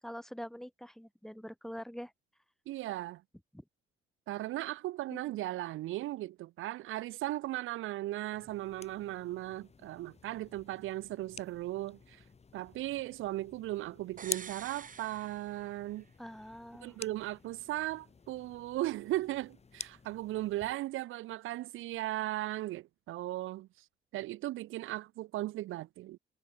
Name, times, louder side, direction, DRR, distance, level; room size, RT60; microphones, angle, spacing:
voice 1, 0.0-2.1 3.5-3.6 5.1-5.3 16.2-17.0, equal, ahead, 4.0 m, -45 dB
voice 2, 2.7-3.2 4.3-12.2 12.5-16.0 16.8-23.7 24.1-26.2, right 16 dB, 85° right, 1.1 m, -37 dB
sound 1, 8.3-20.7, left 5 dB, 30° left, 4.3 m, -49 dB
sound 2, 14.2-16.1 16.4-16.5, right 6 dB, 40° right, 3.2 m, -49 dB
cardioid pair, 90°, 20 cm